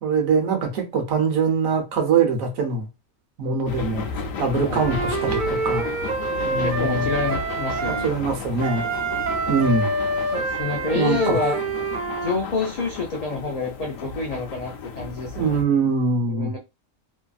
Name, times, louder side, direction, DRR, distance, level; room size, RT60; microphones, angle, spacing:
voice 1, 0.0-2.9 3.4-4.1 4.4-5.9 6.4-7.1 7.9-9.0 9.5-9.9 10.9-11.4 15.4-16.5, right 4 dB, 85° right, 1.2 m, -23 dB
sound 1, 3.7-15.6, left 5 dB, 90° left, 1.0 m, -34 dB
Wind instrument woodwind instrument, 4.7-8.1 8.6-12.4, right 3 dB, 70° right, 0.4 m, -26 dB
voice 2, 6.5-8.1 10.3-11.6 12.2-15.6 16.3-16.6, left 3 dB, 75° left, 0.3 m, -28 dB
3.0 x 2.5 x 2.3 m
omnidirectional pair, 1.4 m